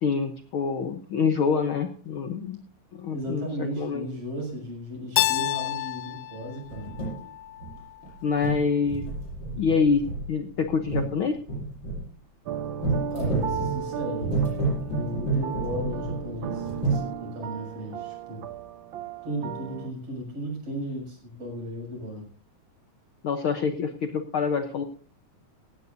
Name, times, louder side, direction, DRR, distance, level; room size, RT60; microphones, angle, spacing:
voice 1, 0.0-2.6 2.9-3.5 3.8-4.0 8.2-9.0 9.6-10.0 10.3-11.4 23.2-24.9, left 5 dB, 60° left, 7 dB, 1.4 m, -26 dB
voice 2, 3.1-6.9 13.1-14.3 15.0-18.4 19.2-22.2, equal, 55° right, 0 dB, 7.8 m, -35 dB
Keyboard (musical), 5.2-8.0, left 16 dB, 85° left, 2.3 m, -29 dB
sound 1, 6.6-7.2 7.6-8.1 8.4-12.1 12.8-17.0, right 3 dB, 35° left, 8.6 m, -30 dB
sound 2, 12.4-19.9, right 8 dB, 70° right, 1.1 m, -35 dB
17.5 x 16.5 x 2.7 m, 0.42 s
omnidirectional pair, 3.3 m